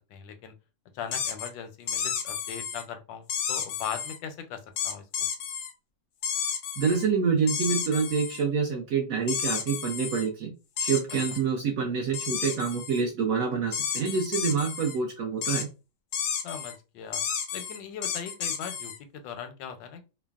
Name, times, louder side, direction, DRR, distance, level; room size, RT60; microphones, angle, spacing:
voice 1, 0.1-0.5 0.9-5.3 16.4-17.2 17.5-20.0, left 7 dB, 85° left, 7 dB, 1.3 m, -39 dB
sound 1, 1.1-1.5 1.9-2.8 3.3-4.2 4.8-5.7 6.2-7.1 7.5-8.4 9.3-10.3 10.8-11.4 12.1-13.0 13.7-15.0 15.4-15.7 16.1-16.7 17.1-19.0, left 7 dB, 70° left, 0.9 m, -32 dB
voice 2, 6.8-10.5 10.8-15.7, right 5 dB, 70° right, 1 dB, 0.8 m, -27 dB
3.3 x 2.0 x 2.3 m, 0.29 s
omnidirectional pair, 1.9 m